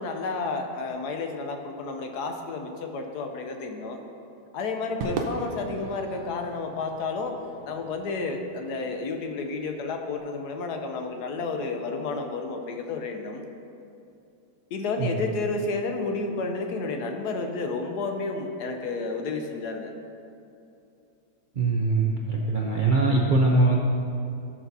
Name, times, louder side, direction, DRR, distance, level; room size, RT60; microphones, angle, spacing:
voice 1, 0.0-4.0 4.5-7.4 7.7-13.4 14.7-19.9, left 3 dB, 70° left, 4 dB, 1.3 m, -31 dB
Crowd / Fireworks, 5.0-9.5, right 3 dB, 75° right, 1.4 m, -38 dB
voice 2, 21.5-23.8, right 3 dB, 45° right, -3 dB, 0.6 m, -22 dB
15.5 x 6.0 x 2.8 m, 2.6 s
omnidirectional pair, 1.8 m